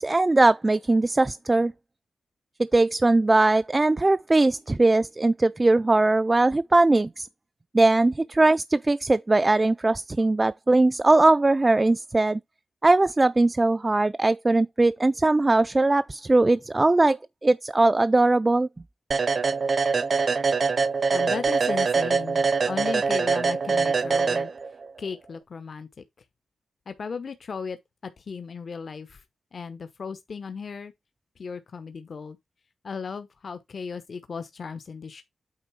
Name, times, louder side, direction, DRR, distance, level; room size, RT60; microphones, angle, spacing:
voice 1, 0.0-1.7 2.6-7.3 7.7-12.4 12.8-18.7, right 2 dB, 20° right, 0.3 m, -20 dB
sound 1, 19.1-24.9, right 4 dB, 50° right, 0.6 m, -24 dB
voice 2, 21.1-24.5 25.0-25.9 26.9-27.8 28.0-29.2 29.5-30.9 31.4-32.4 32.8-35.2, left 5 dB, 55° left, 0.9 m, -36 dB
8.8 x 3.5 x 4.7 m
wide cardioid pair, 115°, 0 cm